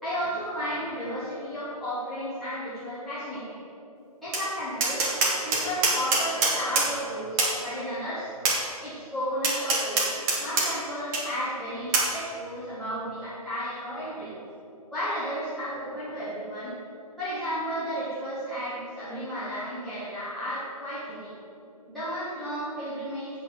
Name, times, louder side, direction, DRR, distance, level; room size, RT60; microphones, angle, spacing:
voice 1, 0.0-3.6 4.2-5.1 5.4-8.3 8.8-14.3 14.9-16.7 17.2-21.3 21.9-23.4, equal, ahead, -15 dB, 1.7 m, -33 dB
Tap, 4.3-4.4 4.8-6.9 7.4-7.5 8.4-8.6 9.4-10.7 11.1-11.2 11.9-12.1, right 3 dB, 15° right, 1.2 m, -23 dB
7.8 x 6.3 x 7.9 m, 2.8 s
figure-of-eight pair, 140°, 19 cm